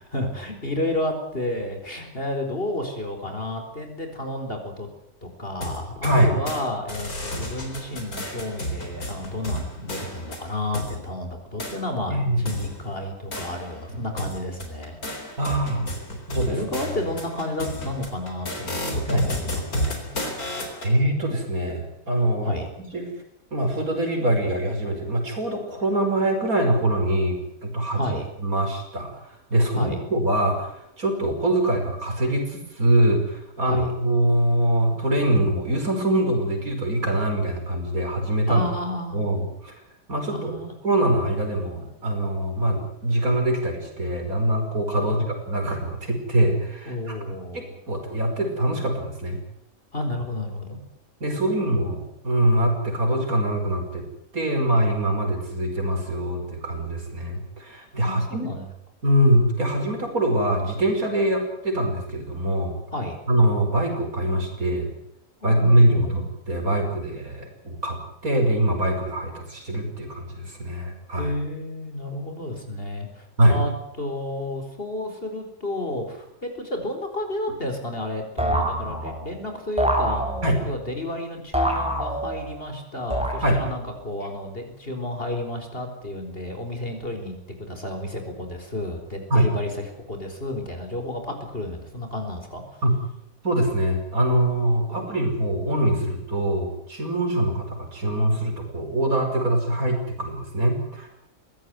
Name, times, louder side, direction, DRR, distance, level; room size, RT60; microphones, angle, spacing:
voice 1, 0.1-4.9 5.2-15.4 15.7-16.0 16.5-20.1 22.4-22.7 27.9-28.3 29.7-30.0 33.6-33.9 38.5-39.2 40.3-40.7 45.0-45.3 46.9-47.8 49.9-50.8 51.3-51.9 58.0-58.7 62.9-63.2 65.4-66.2 71.2-92.8 94.9-95.2, left 1 dB, 40° left, 5 dB, 4.5 m, -31 dB
sound 1, 5.6-6.6 6.9-11.0 11.6-11.8 12.5-13.9 14.2-20.9, equal, 75° left, 4.4 m, -32 dB
voice 2, 6.0-6.3 12.1-12.5 15.4-15.9 16.3-16.6 19.1-19.3 20.8-22.5 22.9-23.1 23.5-28.1 28.4-38.6 39.1-39.7 40.1-40.6 40.8-49.4 51.2-54.1 54.3-58.5 59.0-62.8 63.3-64.9 65.4-68.0 68.2-71.3 73.4-73.6 80.4-80.6 83.4-83.6 89.3-89.5 92.8-93.0 93.4-101.1, right 1 dB, 70° right, 3 dB, 5.7 m, -23 dB
sound 2, 78.4-79.3 79.8-80.7 81.5-82.6 83.1-83.8, right 1 dB, 5° right, 4.5 m, -26 dB
21.5 x 16.5 x 9.6 m, 0.77 s
omnidirectional pair, 1.6 m